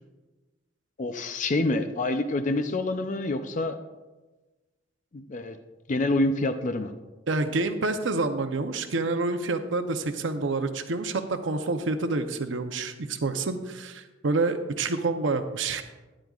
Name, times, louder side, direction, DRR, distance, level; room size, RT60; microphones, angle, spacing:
voice 1, 1.0-3.8 5.1-5.6 5.9-6.9, left 2 dB, 45° left, 8 dB, 0.5 m, -27 dB
voice 2, 7.3-15.8, right 3 dB, 80° right, 8 dB, 0.7 m, -28 dB
13.0 x 10.5 x 2.4 m, 1.2 s
head